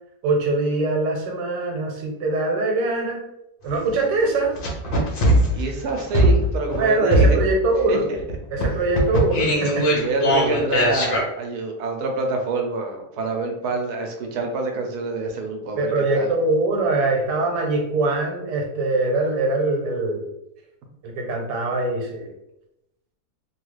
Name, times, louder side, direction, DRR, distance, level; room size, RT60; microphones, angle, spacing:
voice 1, 0.2-3.2 3.6-4.5 6.7-8.0 8.5-9.9 15.8-20.2 21.0-22.3, right 2 dB, 90° right, 1 dB, 1.4 m, -22 dB
sound 1, 3.7-3.8 4.5-6.8 7.1-7.7 8.2-11.2, equal, 55° left, 0.6 m, -20 dB
voice 2, 5.5-7.4 7.9-8.2 10.0-16.3, right 3 dB, 70° right, 3 dB, 1.1 m, -26 dB
3.0 x 2.3 x 3.1 m, 0.86 s
omnidirectional pair, 1.8 m